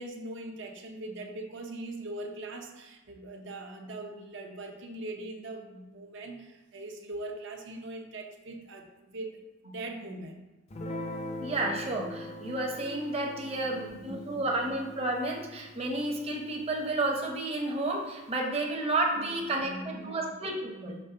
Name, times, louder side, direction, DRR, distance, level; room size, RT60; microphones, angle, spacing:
voice 1, 0.0-10.4 13.4-14.4 19.2-20.3 20.6-21.0, right 2 dB, 60° right, 3 dB, 0.8 m, -41 dB
Guitar, 10.7-17.3, left 1 dB, 35° left, 0.5 m, -42 dB
voice 2, 11.4-21.0, right 2 dB, 30° right, 0 dB, 0.8 m, -31 dB
5.4 x 3.4 x 5.5 m, 1.1 s
head